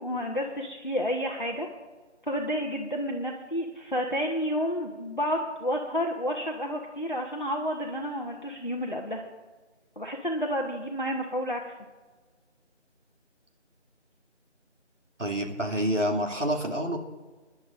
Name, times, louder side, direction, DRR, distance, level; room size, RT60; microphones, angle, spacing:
voice 1, 0.0-1.7 2.3-9.2 10.0-11.7, equal, 45° left, 0 dB, 1.1 m, -30 dB
voice 2, 15.2-17.0, equal, 85° right, 1 dB, 2.7 m, -27 dB
25.0 x 10.5 x 2.6 m, 1.3 s
figure-of-eight pair, 180°, 36 cm